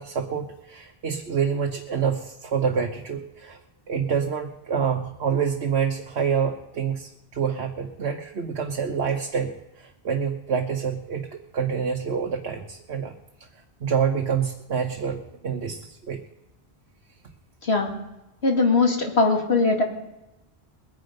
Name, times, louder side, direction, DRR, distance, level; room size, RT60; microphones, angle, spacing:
voice 1, 0.0-3.6 3.9-13.1 13.8-16.2, right 6 dB, 80° right, 3 dB, 1.4 m, -27 dB
voice 2, 18.4-19.8, left 3 dB, 80° left, 1 dB, 2.6 m, -20 dB
22.0 x 9.5 x 5.3 m, 0.95 s
omnidirectional pair, 1.1 m